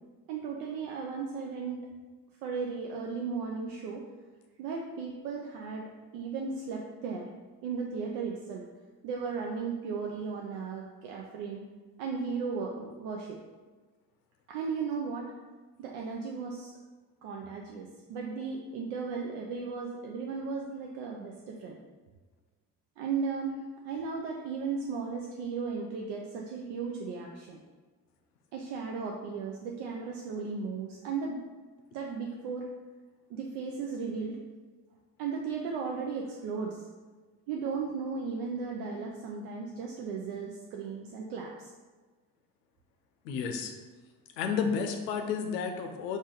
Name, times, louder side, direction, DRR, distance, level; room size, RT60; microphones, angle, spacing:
voice 1, 0.3-1.8 2.4-4.0 4.6-7.3 7.6-8.7 9.0-11.7 12.0-13.4 14.5-15.3 15.8-16.7 17.2-21.8 23.0-27.6 28.5-31.4 31.9-32.7 33.3-34.4 35.2-36.9 37.5-41.7, right 5 dB, 70° right, 0 dB, 0.6 m, -36 dB
voice 2, 43.2-43.7 44.4-46.2, left 6 dB, 85° left, 5 dB, 0.6 m, -31 dB
4.9 x 2.6 x 3.8 m, 1.4 s
hypercardioid pair, 45°, 48 cm